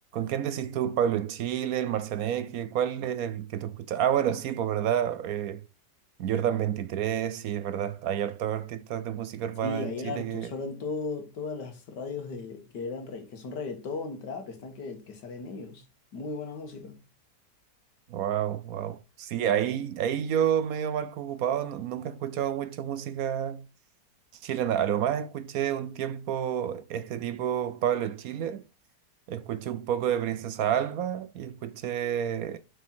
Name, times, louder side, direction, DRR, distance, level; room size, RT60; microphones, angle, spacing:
voice 1, 0.1-5.6 6.2-10.5 18.1-23.6 24.4-28.6 29.3-32.6, right 9 dB, 70° right, 1.0 m, -29 dB
voice 2, 9.6-15.8 16.1-17.0, left 4 dB, 90° left, 2.1 m, -36 dB
6.3 x 5.3 x 4.3 m
omnidirectional pair, 1.8 m